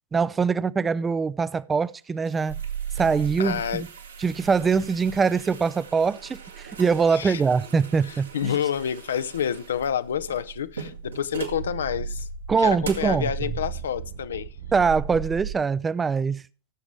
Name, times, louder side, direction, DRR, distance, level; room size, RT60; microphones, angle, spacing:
voice 1, 0.1-2.6 3.0-3.9 4.2-8.5 12.5-13.3 14.7-16.4, right 5 dB, 15° right, 0.4 m, -23 dB
sound 1, 1.8-11.7 12.2-12.3 12.8-13.2, right 6 dB, 75° right, 1.8 m, -42 dB
sound 2, 2.5-15.5, right 7 dB, 55° right, 0.7 m, -37 dB
voice 2, 3.4-3.8 7.1-7.4 8.0-12.3 12.6-14.5, left 8 dB, 65° left, 0.6 m, -28 dB
16.5 x 7.2 x 3.2 m
figure-of-eight pair, 90°, 0 cm